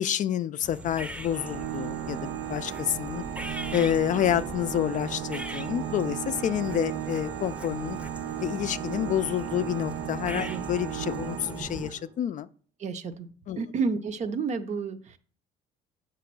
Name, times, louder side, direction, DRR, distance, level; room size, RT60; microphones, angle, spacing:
voice 1, 0.0-8.0 8.4-12.5 13.5-13.6, left 10 dB, 50° left, 0.4 m, -29 dB
sound 1, 0.6-11.9, right 1 dB, 5° right, 0.7 m, -40 dB
Organ, 1.3-12.1, right 12 dB, 90° right, 0.4 m, -36 dB
voice 2, 10.3-10.7 12.8-13.3 13.6-15.2, right 4 dB, 45° right, 0.7 m, -31 dB
7.6 x 3.1 x 6.0 m
cardioid pair, 110°, 17 cm